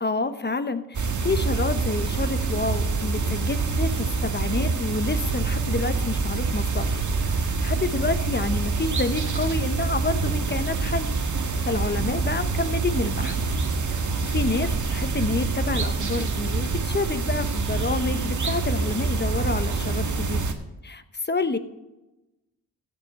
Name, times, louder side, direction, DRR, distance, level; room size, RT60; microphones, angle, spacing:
voice 1, 0.0-11.1 11.6-13.4 13.9-20.4 20.8-21.6, left 3 dB, 25° left, 11 dB, 1.0 m, -28 dB
sound 1, 0.9-20.5, right 4 dB, 50° right, 1.5 m, -26 dB
15.0 x 5.6 x 5.4 m, 0.97 s
cardioid pair, 55°, 40 cm